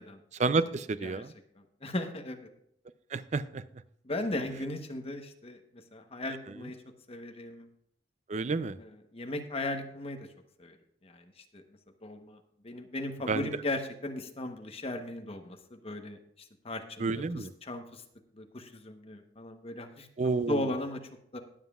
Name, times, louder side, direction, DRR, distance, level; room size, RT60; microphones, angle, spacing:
voice 1, 0.4-1.3 3.1-3.6 8.3-8.8 13.3-13.5 17.0-17.5 20.2-20.7, right 3 dB, 40° right, 14 dB, 0.4 m, -30 dB
voice 2, 1.6-2.5 4.0-6.8 7.1-7.7 8.8-10.3 10.6-10.8 11.0-11.6 12.0-18.0 18.3-20.1 20.5-21.4, left 1 dB, 35° left, 5 dB, 1.1 m, -37 dB
20.5 x 7.4 x 2.4 m, 0.72 s
head